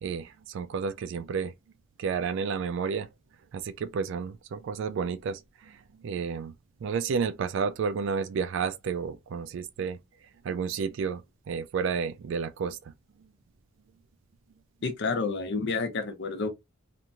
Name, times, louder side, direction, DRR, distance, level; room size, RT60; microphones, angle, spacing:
voice 1, 0.0-1.5 2.0-3.1 3.5-6.5 6.8-10.0 10.4-12.9, right 6 dB, 60° right, 0.3 m, -31 dB
voice 2, 14.8-16.5, left 4 dB, 55° left, 0.6 m, -29 dB
2.9 x 2.5 x 2.3 m
head